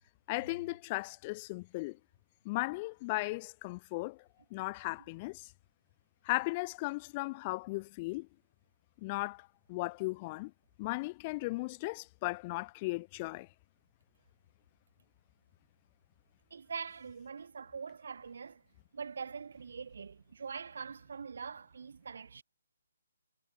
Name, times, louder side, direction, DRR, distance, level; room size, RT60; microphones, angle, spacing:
voice 1, 0.3-2.0 2.4-4.2 4.5-5.5 6.2-8.3 9.0-10.5 10.8-13.5, left 24 dB, 20° left, 0.8 m, -36 dB
voice 2, 16.5-18.6 18.9-22.4, right 5 dB, 60° right, 1.5 m, -43 dB
hypercardioid pair, 170°, 0 cm